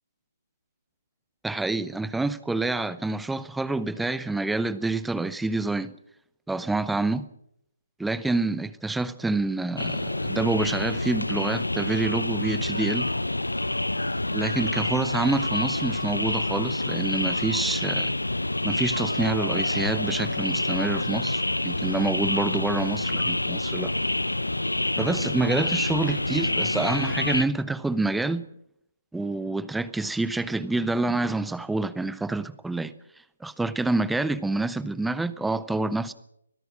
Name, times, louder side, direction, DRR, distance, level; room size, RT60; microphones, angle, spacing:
voice 1, 1.4-6.0 6.5-7.3 8.0-13.1 14.3-18.1 18.6-23.9 25.0-28.5 29.1-32.9 33.4-36.1, right 2 dB, 5° right, 0.8 m, -27 dB
sound 1, 9.8-27.4, left 2 dB, 85° left, 1.0 m, -27 dB
24.5 x 17.5 x 6.3 m
figure-of-eight pair, 145°, 0 cm